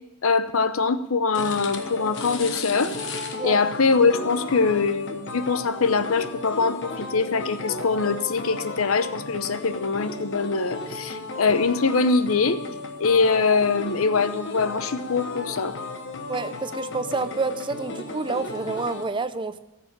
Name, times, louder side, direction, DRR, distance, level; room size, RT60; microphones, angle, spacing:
voice 1, 0.2-2.9 3.4-12.6 13.0-15.7, left 4 dB, 75° left, 12 dB, 0.8 m, -23 dB
sound 1, 1.3-19.1, left 3 dB, 60° left, 1.2 m, -34 dB
voice 2, 16.3-19.6, right 3 dB, 25° right, 12 dB, 0.5 m, -28 dB
13.5 x 6.9 x 8.5 m, 1.0 s
head